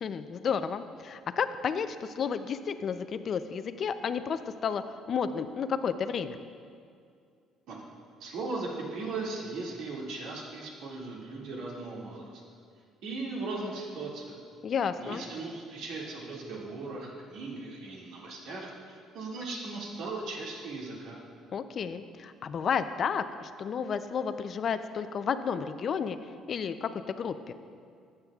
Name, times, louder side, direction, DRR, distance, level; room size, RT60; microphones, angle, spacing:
voice 1, 0.0-4.8 5.1-6.4 14.6-15.2 21.5-26.2 26.5-27.5, left 6 dB, 45° left, 11 dB, 0.4 m, -32 dB
voice 2, 8.2-12.4 13.0-14.3 15.0-21.2, right 3 dB, 75° right, -3 dB, 2.1 m, -38 dB
14.5 x 8.8 x 2.4 m, 2.3 s
cardioid pair, 130°, 0 cm